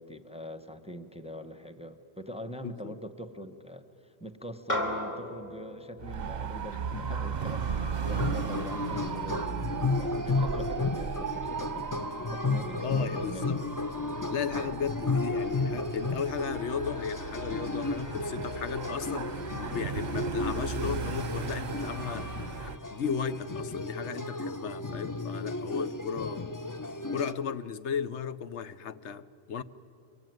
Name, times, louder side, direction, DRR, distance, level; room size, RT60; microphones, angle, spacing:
voice 1, 0.0-13.5, equal, 5° right, 0.9 m, -43 dB
voice 2, 2.6-2.9 6.9-7.3 12.8-13.7 14.3-22.3 22.6-26.5 27.1-29.6, left 7 dB, 90° left, 1.1 m, -35 dB
sound 1, 4.7-9.3, left 1 dB, 40° left, 2.8 m, -38 dB
Dog / Motorcycle, 6.0-22.8, right 7 dB, 45° right, 0.8 m, -36 dB
sound 2, 8.1-27.3, left 3 dB, 25° left, 0.5 m, -33 dB
24.0 x 24.0 x 9.4 m
omnidirectional pair, 1.1 m